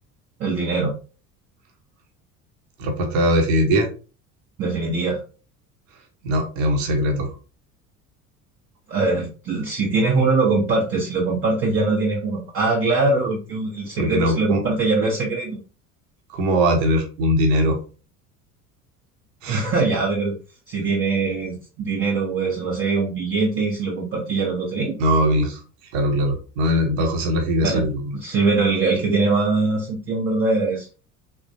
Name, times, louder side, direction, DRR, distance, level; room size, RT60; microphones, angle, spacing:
voice 1, 0.4-0.9 4.6-5.2 8.9-15.6 19.5-20.3 20.7-24.9 27.6-27.8 28.1-30.9, right 3 dB, 30° right, -3 dB, 0.7 m, -22 dB
voice 2, 2.8-3.9 6.2-7.3 14.0-14.6 16.3-17.8 19.4-19.6 25.0-25.6 25.9-28.2, equal, 60° right, 3 dB, 0.8 m, -21 dB
3.2 x 2.1 x 2.6 m, 0.34 s
figure-of-eight pair, 65°, 45 cm